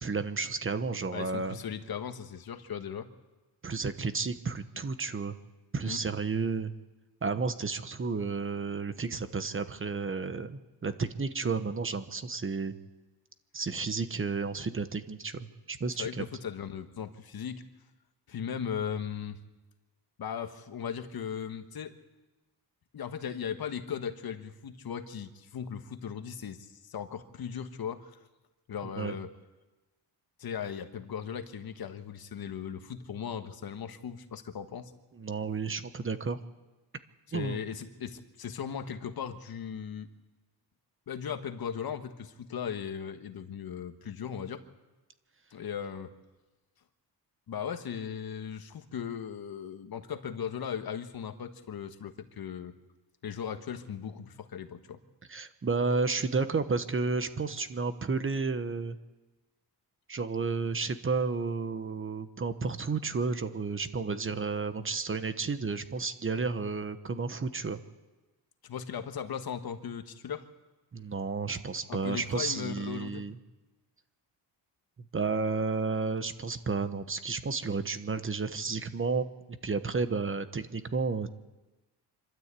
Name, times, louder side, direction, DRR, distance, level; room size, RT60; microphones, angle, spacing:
voice 1, 0.0-1.6 3.6-5.3 5.7-6.7 7.2-12.8 13.5-16.1 29.0-29.1 35.2-36.4 37.3-37.6 55.3-59.0 60.1-67.8 70.9-73.4 75.1-79.3 79.6-81.3, right 4 dB, 30° right, 11 dB, 1.1 m, -32 dB
voice 2, 1.1-3.1 5.8-6.0 16.0-17.6 18.3-19.4 20.2-21.9 22.9-28.2 28.7-29.3 30.4-34.9 37.3-40.1 41.1-44.6 45.5-46.1 47.5-52.7 53.2-55.0 68.6-70.5 71.9-73.2, left 7 dB, 55° left, 8 dB, 1.5 m, -37 dB
25.5 x 13.0 x 8.4 m, 1.1 s
cardioid pair, 115°, 42 cm